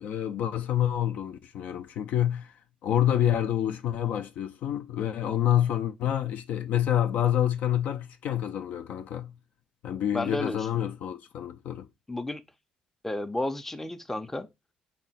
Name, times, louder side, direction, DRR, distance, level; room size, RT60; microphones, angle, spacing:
voice 1, 0.0-2.5 2.8-9.3 9.8-11.9, left 11 dB, 70° left, 0.4 m, -27 dB
voice 2, 10.1-10.9 12.1-12.4 13.0-14.5, left 1 dB, 10° left, 0.5 m, -32 dB
3.6 x 2.1 x 4.0 m
supercardioid pair, 65°, 3 cm